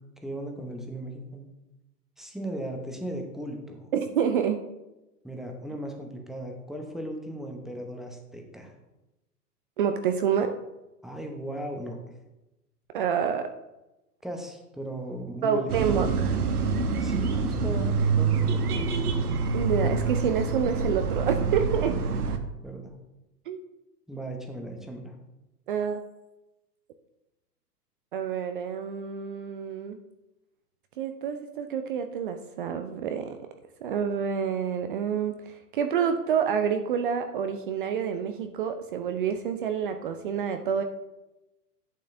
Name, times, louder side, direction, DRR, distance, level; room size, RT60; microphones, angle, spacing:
voice 1, 0.2-1.5 2.2-3.9 5.2-8.7 11.0-12.0 14.2-15.7 17.0-19.3 22.1-22.2 22.6-23.0 24.1-25.2, right 1 dB, ahead, 2 dB, 0.8 m, -37 dB
voice 2, 3.9-4.6 9.8-10.6 12.9-13.5 15.4-16.4 19.5-22.0 23.5-23.6 25.7-26.0 28.1-30.0 31.0-33.4 33.8-40.8, right 7 dB, 35° right, 8 dB, 0.5 m, -28 dB
sound 1, 15.7-22.4, right 5 dB, 70° right, 1.1 m, -26 dB
11.0 x 8.3 x 2.7 m, 0.98 s
figure-of-eight pair, 110°, 48 cm